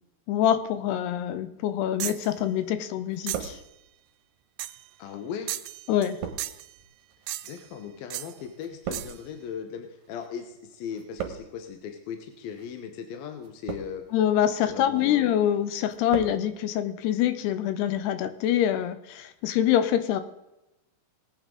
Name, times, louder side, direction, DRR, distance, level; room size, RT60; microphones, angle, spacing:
voice 1, 0.3-3.6 5.9-6.2 14.1-20.2, left 10 dB, 85° left, 10 dB, 2.9 m, -25 dB
sound 1, 2.0-2.3 3.3-3.6 4.6-4.9 5.5-6.1 6.4-6.7 7.3-7.7 8.1-8.3 8.9-9.2, right 15 dB, 80° right, 2.4 m, -35 dB
sound 2, 2.2-2.8 3.0-4.1 4.8-10.4 10.7-11.7 12.4-12.7 13.4-14.2 14.6-15.1 15.5-16.4 16.7-16.8, right 7 dB, 60° right, 2.3 m, -39 dB
voice 2, 5.0-5.5 7.4-14.0 14.6-15.3, left 7 dB, 70° left, 6 dB, 2.7 m, -38 dB
19.5 x 8.8 x 3.8 m, 0.92 s
omnidirectional pair, 4.7 m